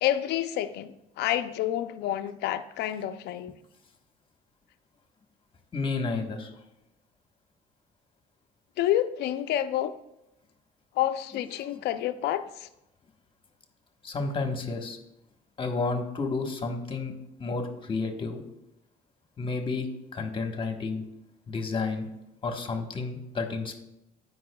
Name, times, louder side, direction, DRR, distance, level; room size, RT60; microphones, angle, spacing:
voice 1, 0.0-3.6 8.8-9.9 11.0-12.7, left 12 dB, 80° left, 11 dB, 0.5 m, -28 dB
voice 2, 5.7-6.5 14.0-15.0 15.6-17.1 17.4-18.4 19.4-19.9 20.1-21.0 21.5-22.1 22.4-23.7, left 3 dB, 30° left, 4 dB, 1.3 m, -31 dB
16.5 x 5.5 x 2.3 m, 0.87 s
cardioid pair, 110°, 17 cm